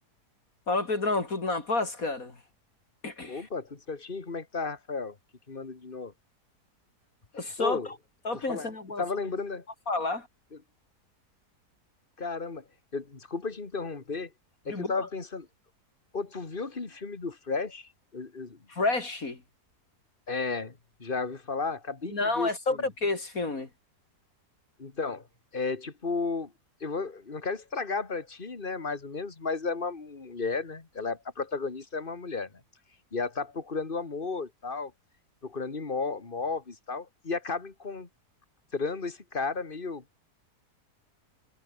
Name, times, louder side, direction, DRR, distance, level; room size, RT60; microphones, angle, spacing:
voice 1, 0.7-2.3 3.0-3.4 7.3-7.8 8.2-9.0 9.9-10.3 14.7-14.9 18.7-19.4 22.0-23.7, left 3 dB, 55° left, 3.7 m, -29 dB
voice 2, 3.3-5.2 5.5-6.1 7.4-7.9 8.3-9.6 10.5-10.6 12.2-12.6 12.9-14.3 14.7-15.5 16.1-18.6 20.3-22.9 24.8-25.2 25.5-26.5 26.8-32.5 33.1-34.9 35.4-38.1 38.7-40.0, left 4 dB, 30° left, 2.4 m, -33 dB
omnidirectional pair, 1.7 m